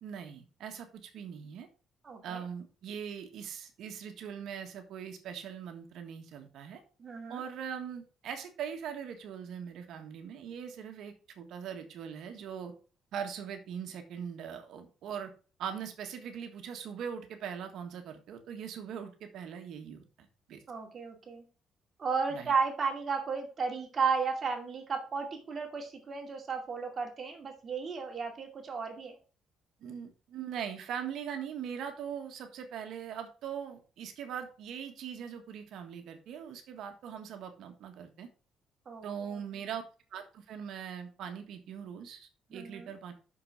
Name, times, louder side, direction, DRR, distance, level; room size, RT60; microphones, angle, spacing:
voice 1, 0.0-1.7 2.2-6.8 7.3-12.7 13.1-15.3 15.6-20.6 22.3-22.5 29.8-38.3 39.0-39.8 40.1-43.1, right 8 dB, 70° right, 5 dB, 1.5 m, -41 dB
voice 2, 2.0-2.4 7.0-7.4 20.7-21.4 22.0-29.2 38.9-39.0 42.5-42.9, right 5 dB, 35° right, 2 dB, 2.4 m, -34 dB
6.2 x 5.9 x 6.5 m, 0.37 s
cardioid pair, 145°, 0 cm